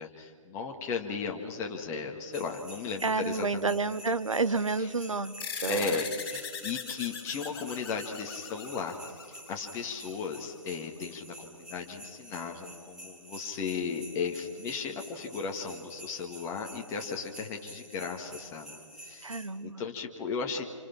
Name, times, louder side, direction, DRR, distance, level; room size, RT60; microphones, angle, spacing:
voice 1, 0.0-3.7 5.7-9.0 9.5-20.6, left 5 dB, 15° left, 3 dB, 1.8 m, -36 dB
sound 1, 2.3-19.5, right 1 dB, 5° right, 2.5 m, -49 dB
voice 2, 3.0-6.0 19.2-19.8, right 3 dB, 75° right, 13 dB, 1.0 m, -30 dB
sound 2, 5.4-10.3, left 6 dB, 45° left, 4.5 m, -40 dB
28.0 x 25.0 x 5.9 m, 2.2 s
figure-of-eight pair, 135°, 17 cm